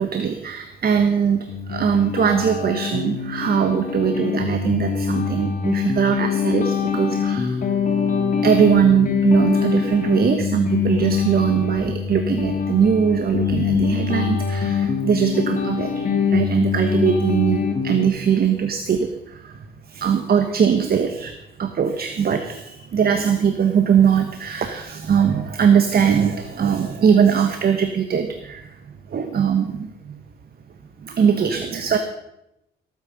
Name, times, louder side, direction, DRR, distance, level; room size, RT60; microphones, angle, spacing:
voice 1, 0.0-7.9 8.4-30.2 31.0-32.0, right 7 dB, 50° right, 7 dB, 1.3 m, -21 dB
sound 1, 1.5-18.0, left 6 dB, 40° left, 2.3 m, -23 dB
18.5 x 9.0 x 5.4 m, 0.85 s
cardioid pair, 90°, 20 cm